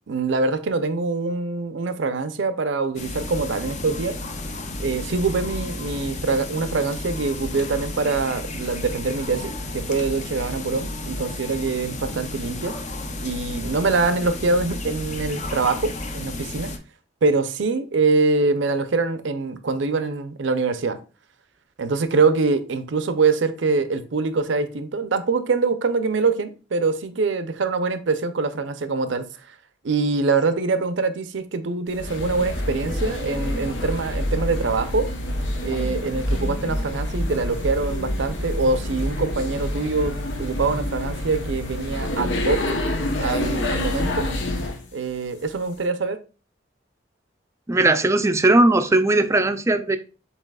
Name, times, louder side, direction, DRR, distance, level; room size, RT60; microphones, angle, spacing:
voice 1, 0.1-4.2 4.8-12.7 13.2-16.7 17.2-21.0 21.8-29.2 29.8-35.1 35.6-42.6 43.2-44.3 44.9-46.2, right 4 dB, 75° right, 0.6 m, -24 dB
sound 1, 3.0-16.8, left 2 dB, 40° left, 0.6 m, -33 dB
sound 2, 31.9-44.8, left 1 dB, 80° left, 0.9 m, -27 dB
voice 2, 47.7-50.0, right 2 dB, 15° right, 0.4 m, -18 dB
7.3 x 2.9 x 2.3 m
head